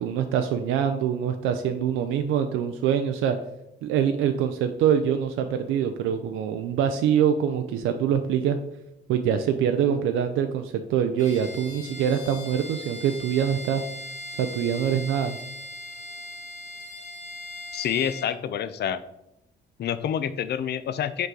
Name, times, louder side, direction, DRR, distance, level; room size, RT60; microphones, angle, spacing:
voice 1, 0.0-3.4 3.8-8.6 9.1-13.8 14.4-15.4, right 8 dB, 90° right, 7 dB, 0.4 m, -24 dB
Bowed string instrument, 11.2-18.4, left 1 dB, 35° left, 0.9 m, -39 dB
voice 2, 17.7-19.0 19.8-21.3, left 9 dB, 55° left, 13 dB, 0.5 m, -27 dB
5.3 x 4.7 x 3.8 m, 0.87 s
cardioid pair, 90°, 20 cm